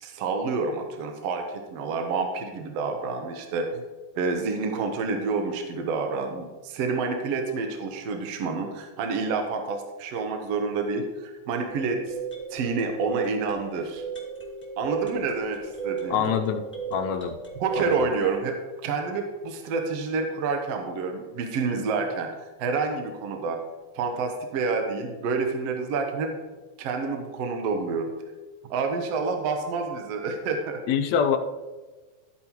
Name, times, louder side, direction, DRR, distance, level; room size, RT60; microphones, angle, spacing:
voice 1, 0.0-3.8 4.2-12.0 12.5-14.0 14.8-15.6 15.8-16.3 17.6-18.6 18.8-22.3 22.6-23.6 24.0-26.3 26.8-28.1 28.7-30.8, right 4 dB, 65° right, 4 dB, 1.8 m, -28 dB
sound 1, 11.7-18.4, right 7 dB, 5° left, 1.3 m, -35 dB
voice 2, 16.1-16.6 16.9-17.4 17.8-18.0 30.9-31.4, left 8 dB, 75° left, 7 dB, 1.8 m, -24 dB
12.5 x 8.7 x 3.0 m, 1.3 s
omnidirectional pair, 3.4 m